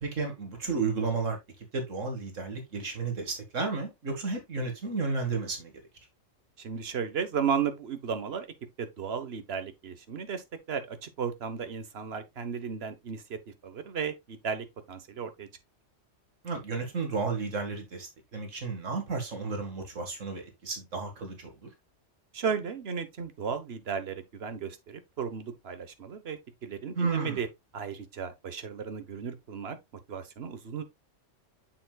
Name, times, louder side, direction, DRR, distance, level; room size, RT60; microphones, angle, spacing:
voice 1, 0.0-1.4 1.7-5.7 16.4-21.7 26.9-27.4, right 4 dB, 85° right, 2.3 m, -32 dB
voice 2, 6.6-8.5 8.8-15.5 22.3-27.5 27.7-29.8 30.1-30.8, right 6 dB, 55° right, 1.3 m, -34 dB
7.5 x 6.8 x 2.3 m
omnidirectional pair, 1.3 m